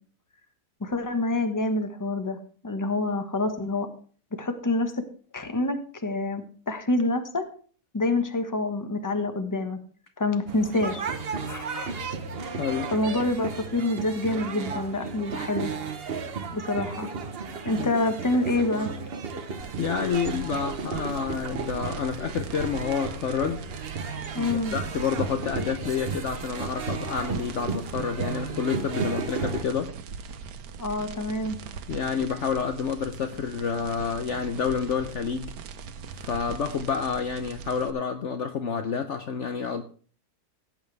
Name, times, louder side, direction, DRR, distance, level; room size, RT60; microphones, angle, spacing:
voice 1, 0.8-2.4 2.6-3.9 4.4-4.9 5.3-7.5 7.9-9.8 10.2-11.0 11.5-11.9 12.9-15.7 16.5-17.1 17.6-18.9 24.3-24.7 30.8-31.6, left 2 dB, 15° left, 7 dB, 1.1 m, -27 dB
sound 1, 10.5-29.6, right 5 dB, 45° right, 1.0 m, -34 dB
voice 2, 12.5-12.9 17.8-17.9 19.8-23.6 24.4-29.9 31.9-35.5 36.1-39.8, left 6 dB, 55° left, 8 dB, 0.9 m, -29 dB
sound 2, 19.6-37.9, right 6 dB, 90° right, 1.4 m, -41 dB
17.5 x 8.8 x 3.4 m, 0.43 s
omnidirectional pair, 1.7 m